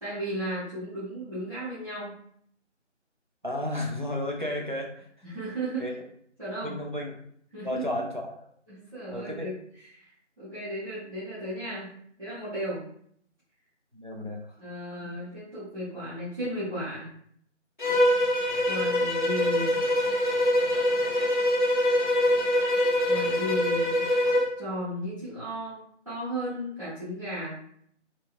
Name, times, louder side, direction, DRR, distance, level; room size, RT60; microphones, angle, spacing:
voice 1, 0.0-2.2 5.2-5.8 6.4-6.8 7.5-7.8 8.7-9.5 9.8-10.1 10.4-11.9 12.2-12.8 14.6-17.1 18.6-19.8 23.1-24.1 24.6-25.8 26.1-27.5, equal, 30° right, -13 dB, 0.8 m, -34 dB
voice 2, 3.4-5.1 5.8-6.0 6.6-7.1 7.6-8.3 9.1-9.5 13.9-14.5 15.0-15.1, left 1 dB, 45° right, 0 dB, 0.4 m, -33 dB
Bowed string instrument, 17.8-24.5, left 1 dB, 40° left, 0.6 m, -24 dB
2.8 x 2.6 x 2.5 m, 0.65 s
figure-of-eight pair, 165°, 37 cm